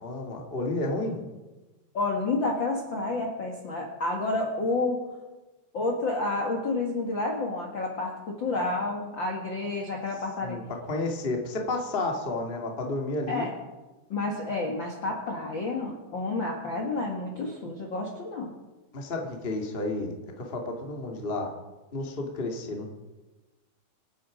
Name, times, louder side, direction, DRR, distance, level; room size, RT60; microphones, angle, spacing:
voice 1, 0.0-1.2 10.4-13.5 18.9-21.5 21.9-22.9, left 2 dB, 40° left, 1 dB, 0.8 m, -31 dB
voice 2, 1.9-5.0 5.7-10.6 13.3-13.5 14.1-18.5, left 2 dB, 80° left, 0 dB, 1.0 m, -30 dB
27.0 x 9.1 x 5.1 m, 1.2 s
omnidirectional pair, 4.9 m